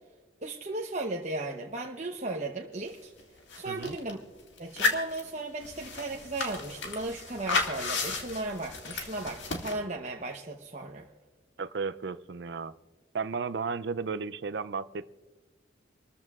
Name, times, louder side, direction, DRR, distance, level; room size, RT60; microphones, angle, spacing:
voice 1, 0.4-3.1 3.5-4.2 4.6-11.1, right 2 dB, 40° right, 0 dB, 0.9 m, -36 dB
sound 1, 2.9-3.0 3.2-4.1 4.6-9.7, left 3 dB, 85° left, 2.0 m, -33 dB
voice 2, 3.7-4.0 11.6-12.7 13.1-15.1, right 5 dB, 65° right, 15 dB, 0.5 m, -34 dB
28.0 x 14.0 x 2.4 m, 1.4 s
head